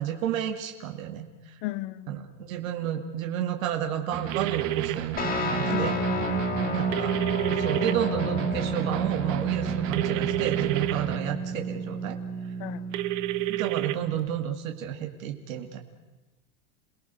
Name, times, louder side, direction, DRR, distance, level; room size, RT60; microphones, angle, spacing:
voice 1, 0.0-1.6 2.1-6.0 6.6-7.2 7.5-12.2 12.4-12.5 13.5-15.8, right 10 dB, 85° right, 2.3 m, -31 dB
voice 2, 1.6-2.3 5.7-6.7 12.6-12.8, left 18 dB, 50° left, 0.9 m, -36 dB
sound 1, 4.1-11.2, right 10 dB, 35° right, 1.6 m, -33 dB
sound 2, 4.3-4.9 6.9-7.9 9.9-10.9 12.9-14.0, right 19 dB, 65° right, 1.3 m, -29 dB
Guitar, 5.2-14.3, right 2 dB, 20° left, 2.3 m, -31 dB
28.5 x 18.5 x 6.3 m
supercardioid pair, 155°, 39 cm